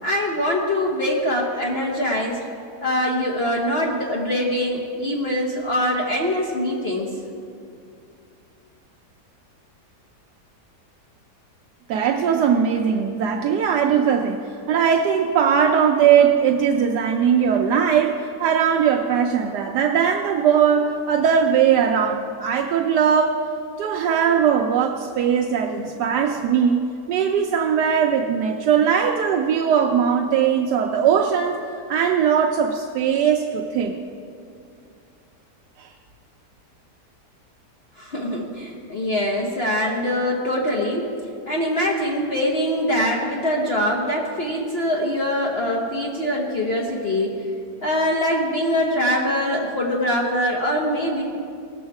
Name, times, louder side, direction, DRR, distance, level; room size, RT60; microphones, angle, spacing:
voice 1, 0.0-2.4 2.8-7.1 38.0-41.1 41.5-47.3 47.8-51.2, left 1 dB, 40° left, -2 dB, 1.1 m, -23 dB
voice 2, 11.9-14.4 14.7-23.4 23.8-26.8 27.1-34.0 35.8-35.9, right 7 dB, 75° right, 2 dB, 1.2 m, -20 dB
17.5 x 7.2 x 4.7 m, 2.4 s
omnidirectional pair, 1.8 m